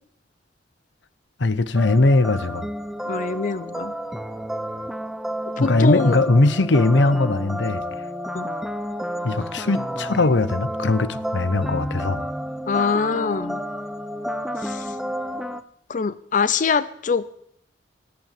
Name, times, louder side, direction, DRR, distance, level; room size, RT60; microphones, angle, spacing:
voice 1, 1.4-2.7 5.6-7.8 9.2-12.3, left 2 dB, 90° left, 15 dB, 0.9 m, -20 dB
sound 1, 1.8-15.6, equal, ahead, 0.6 m, -31 dB
voice 2, 3.1-3.9 5.6-6.2 8.3-8.5 12.7-13.6 14.6-14.9 15.9-17.2, left 5 dB, 45° left, 16 dB, 0.5 m, -24 dB
17.5 x 8.7 x 7.5 m, 0.75 s
head